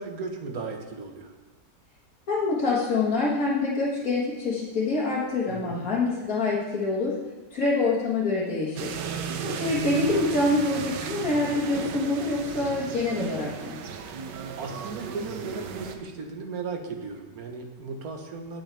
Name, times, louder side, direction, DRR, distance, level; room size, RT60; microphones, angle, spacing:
voice 1, 0.0-1.3 5.5-5.8 9.4-9.7 14.1-18.6, right 4 dB, 60° right, 3 dB, 1.6 m, -36 dB
voice 2, 2.3-7.1 7.5-8.9 9.4-13.8, left 3 dB, 55° left, -7 dB, 2.0 m, -26 dB
sound 1, 8.8-16.0, right 6 dB, 85° right, 1.4 m, -35 dB
19.0 x 6.4 x 3.4 m, 1.2 s
omnidirectional pair, 1.8 m